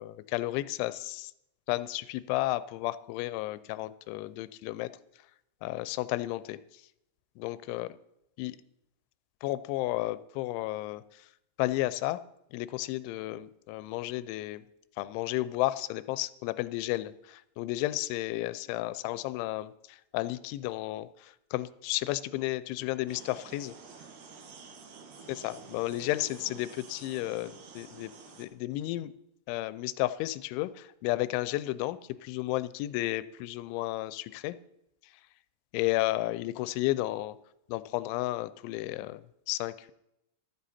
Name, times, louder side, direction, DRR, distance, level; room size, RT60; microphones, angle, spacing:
voice 1, 0.0-1.3 1.7-4.9 5.6-6.8 7.4-8.0 8.4-8.6 9.4-11.3 11.6-12.2 12.5-14.7 15.0-23.7 25.4-28.1 28.4-29.1 29.5-34.6 35.0-35.1 35.7-37.4 37.7-39.9, left 17 dB, 85° left, 15 dB, 3.0 m, -33 dB
sound 1, 23.1-28.5, right 5 dB, 65° right, 2.2 m, -50 dB
14.5 x 12.5 x 4.3 m, 0.85 s
omnidirectional pair, 5.4 m